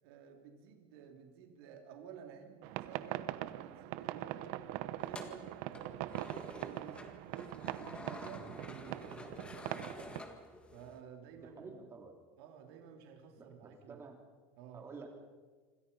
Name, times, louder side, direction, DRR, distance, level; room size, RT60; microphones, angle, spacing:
voice 1, 0.0-4.6 5.0-6.2 6.6-10.0 10.7-11.7 12.4-14.0 14.6-14.8, right 7 dB, 80° right, 3 dB, 3.4 m, -53 dB
sound 1, 2.6-10.2, right 15 dB, 55° right, 0.9 m, -42 dB
sound 2, 5.0-11.0, left 2 dB, 10° left, 1.8 m, -50 dB
voice 2, 11.4-12.1 13.4-14.2 14.7-15.1, right 4 dB, 20° right, 3 dB, 3.3 m, -50 dB
27.0 x 26.5 x 5.5 m, 1.4 s
cardioid pair, 175°, 13 cm